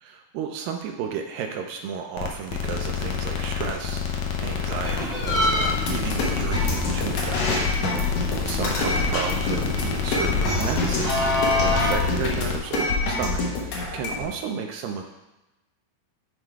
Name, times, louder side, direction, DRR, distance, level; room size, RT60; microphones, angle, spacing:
voice 1, 0.0-8.0 8.4-15.0, right 7 dB, 80° right, 3 dB, 2.2 m, -33 dB
sound 1, 2.2-12.6, left 7 dB, 90° left, 1.4 m, -29 dB
sound 2, 4.8-11.9, left 1 dB, 35° left, 1.3 m, -28 dB
sound 3, 5.8-14.2, left 2 dB, 60° left, 2.2 m, -27 dB
9.6 x 3.9 x 4.6 m, 0.98 s
omnidirectional pair, 4.2 m